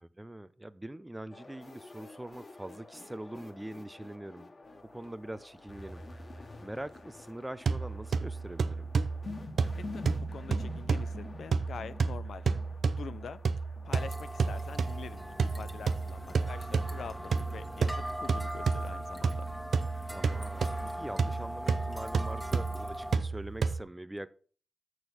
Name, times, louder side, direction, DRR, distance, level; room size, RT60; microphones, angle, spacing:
voice 1, 0.0-8.9 20.1-24.4, right 1 dB, 15° right, 0.5 m, -43 dB
sound 1, 1.3-19.9, left 2 dB, 50° left, 1.5 m, -49 dB
sound 2, 7.7-23.8, right 5 dB, 75° right, 0.6 m, -32 dB
voice 2, 9.8-12.4 12.8-13.4 13.8-19.5, left 6 dB, 85° left, 0.6 m, -45 dB
sound 3, 13.9-23.2, equal, 5° left, 1.6 m, -41 dB
6.9 x 6.2 x 5.7 m
cardioid pair, 75°, 0 cm